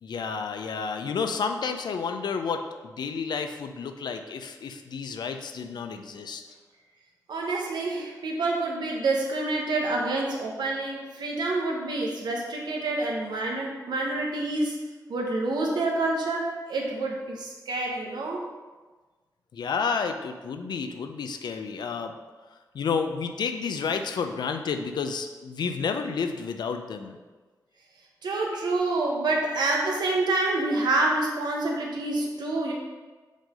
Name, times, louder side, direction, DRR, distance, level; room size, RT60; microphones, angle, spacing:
voice 1, 0.0-6.4 19.5-22.1 22.7-27.2, left 5 dB, 80° left, 6 dB, 0.5 m, -30 dB
voice 2, 7.3-14.8 15.1-18.4 28.2-32.7, right 2 dB, 85° right, -1 dB, 1.1 m, -27 dB
5.1 x 3.8 x 5.1 m, 1.3 s
cardioid pair, 60°, 7 cm